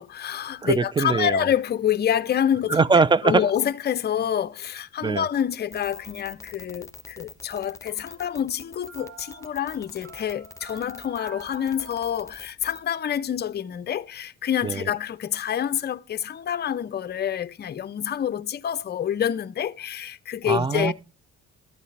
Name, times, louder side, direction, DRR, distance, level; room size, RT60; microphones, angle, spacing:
voice 1, 0.0-2.8 3.2-20.9, left 9 dB, 35° left, 0.5 m, -27 dB
voice 2, 0.6-1.4 2.7-3.4 5.0-5.3 14.6-14.8 20.4-20.9, right 4 dB, 15° right, 0.4 m, -21 dB
sound 1, 5.7-12.8, left 4 dB, 10° left, 1.0 m, -44 dB
sound 2, 5.8-6.7 7.9-12.4, right 6 dB, 55° right, 1.9 m, -49 dB
12.5 x 8.2 x 3.2 m
cardioid pair, 90°, 30 cm